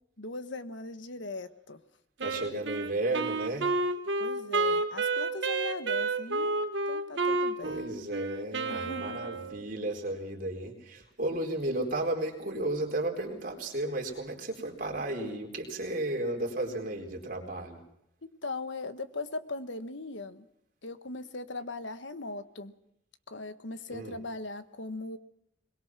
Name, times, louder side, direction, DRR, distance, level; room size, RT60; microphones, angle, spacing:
voice 1, 0.2-1.8 4.2-6.6 6.9-7.8 8.7-9.2 18.2-20.5 20.8-22.7 23.3-25.2, left 2 dB, 70° left, 11 dB, 1.5 m, -39 dB
voice 2, 2.2-3.7 7.6-17.8 23.9-24.2, right 1 dB, 45° right, 2 dB, 4.2 m, -33 dB
Wind instrument woodwind instrument, 2.2-9.7, right 3 dB, 70° right, 1.5 m, -30 dB
22.0 x 21.5 x 6.0 m, 0.76 s
head